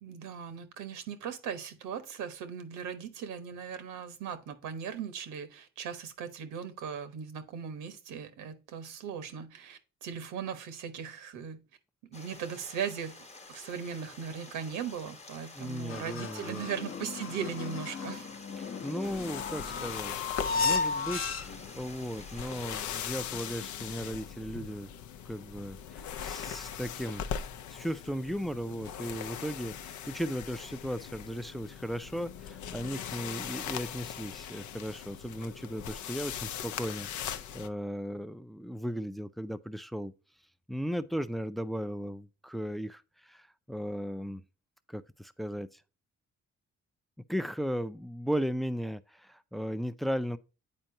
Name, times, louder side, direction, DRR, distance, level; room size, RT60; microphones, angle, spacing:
voice 1, 0.0-11.6 12.1-13.2 13.5-18.3, right 7 dB, 85° right, 1.1 m, -38 dB
Stream, 12.1-22.9, left 2 dB, 20° left, 0.9 m, -50 dB
voice 2, 15.6-16.7 18.6-21.5 21.8-24.9 25.3-27.2 27.7-40.1 40.7-44.4 44.9-45.8 47.3-50.4, equal, ahead, 0.4 m, -36 dB
sound 1, 15.9-21.8, left 4 dB, 45° left, 0.8 m, -34 dB
sound 2, 19.0-37.7, left 9 dB, 75° left, 0.6 m, -40 dB
9.0 x 4.4 x 2.7 m
cardioid pair, 90°, 30 cm